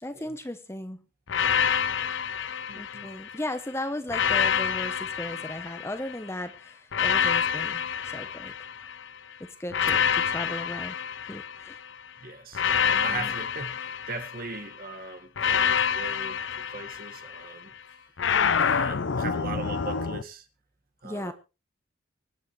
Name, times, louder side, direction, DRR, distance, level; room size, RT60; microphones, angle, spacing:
voice 1, 0.0-1.0 2.8-8.5 9.4-11.0 11.3-11.8 13.1-13.3 21.0-21.3, left 1 dB, 15° left, 0.9 m, -36 dB
sound 1, 1.3-3.4 4.1-6.2 6.9-9.1 9.7-11.9 12.5-14.7 15.4-17.5 18.2-20.2, left 7 dB, 60° left, 0.6 m, -27 dB
voice 2, 2.7-3.1 12.2-17.7 18.6-20.5 21.0-21.3, right 3 dB, 45° right, 1.7 m, -39 dB
24.0 x 8.5 x 3.2 m
head